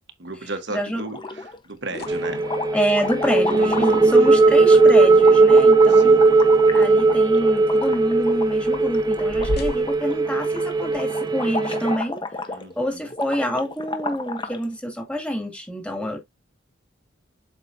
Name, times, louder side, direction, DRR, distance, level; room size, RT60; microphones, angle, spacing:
voice 1, 0.2-2.4 3.5-4.1 5.9-6.4 6.7-7.2 12.5-13.1, right 2 dB, 55° right, 1.3 m, -35 dB
voice 2, 0.7-1.0 2.7-6.2 6.7-12.2 12.8-16.2, equal, 5° left, 2.4 m, -27 dB
sound 1, 1.0-1.6 1.9-14.6, left 3 dB, 25° left, 1.0 m, -33 dB
sound 2, 1.6-11.0, left 1 dB, 50° left, 1.0 m, -39 dB
sound 3, 2.1-12.0, right 3 dB, 20° right, 0.6 m, -17 dB
8.1 x 5.8 x 2.7 m
head